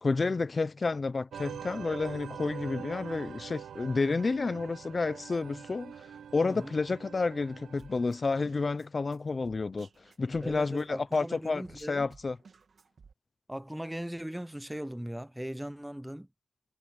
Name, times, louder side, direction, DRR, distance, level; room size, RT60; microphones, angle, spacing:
voice 1, 0.0-5.9 6.3-9.9 10.2-12.4, left 3 dB, 30° left, 0.8 m, -30 dB
sound 1, 1.3-8.2, right 8 dB, 65° right, 1.0 m, -44 dB
Drum kit, 7.8-13.1, right 5 dB, 45° right, 2.8 m, -57 dB
voice 2, 10.4-12.1 13.5-16.3, right 1 dB, 5° right, 0.9 m, -39 dB
cardioid pair, 110°, 0 cm